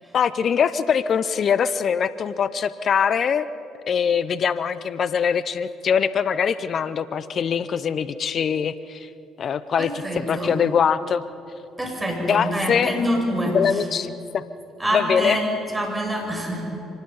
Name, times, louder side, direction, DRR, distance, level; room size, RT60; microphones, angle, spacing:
voice 1, 0.1-3.5 3.9-9.1 9.4-9.9 10.1-11.2 12.2-12.9 13.5-14.4 14.9-15.4, left 7 dB, 50° left, 15 dB, 0.6 m, -22 dB
voice 2, 9.8-10.6 11.8-13.6 14.8-15.5 15.7-16.7, equal, 10° right, 1 dB, 6.4 m, -26 dB
25.0 x 19.5 x 5.5 m, 2.8 s
hypercardioid pair, 60°, 0 cm